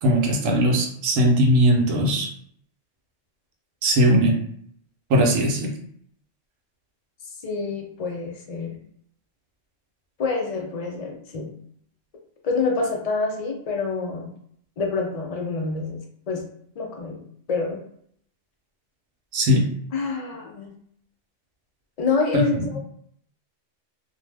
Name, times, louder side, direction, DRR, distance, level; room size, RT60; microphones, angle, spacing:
voice 1, 0.0-2.3 3.8-4.4 5.1-5.7 19.3-19.7 22.3-22.7, equal, 90° right, 0 dB, 1.0 m, -19 dB
voice 2, 7.4-8.8 10.2-11.5 12.4-14.3 14.8-16.0 16.3-16.4 16.8-17.2 17.5-17.8 19.9-20.7 22.0-22.8, left 4 dB, 80° left, 1 dB, 0.3 m, -27 dB
2.5 x 2.0 x 3.3 m, 0.65 s
omnidirectional pair, 1.3 m